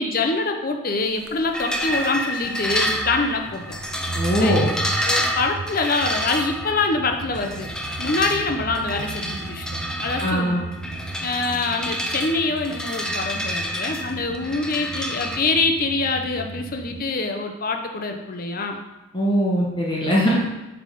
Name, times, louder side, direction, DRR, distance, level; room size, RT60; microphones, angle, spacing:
voice 1, 0.0-3.6 4.4-4.6 5.0-7.7 8.0-9.7 10.0-10.6 11.2-18.8, left 3 dB, 45° left, 4 dB, 0.6 m, -25 dB
sound 1, 1.1-17.0, right 3 dB, 90° right, 0.6 m, -35 dB
sound 2, 1.5-15.4, equal, 5° left, 0.4 m, -29 dB
voice 2, 4.1-4.7 10.2-10.6 19.1-20.4, equal, 25° left, -4 dB, 1.1 m, -21 dB
7.6 x 3.5 x 5.0 m, 1.0 s
head